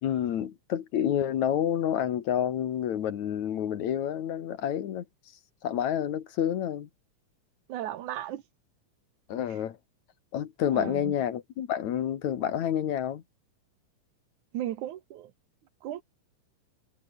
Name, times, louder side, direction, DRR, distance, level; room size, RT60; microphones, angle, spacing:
voice 1, 0.0-5.0 5.6-6.9 9.3-9.8 10.3-13.2, left 10 dB, 65° left, 2.8 m, -29 dB
voice 2, 7.7-8.4 9.5-9.6 10.7-11.1 14.5-15.3 15.8-16.0, right 12 dB, 70° right, 2.6 m, -35 dB
omnidirectional pair, 3.8 m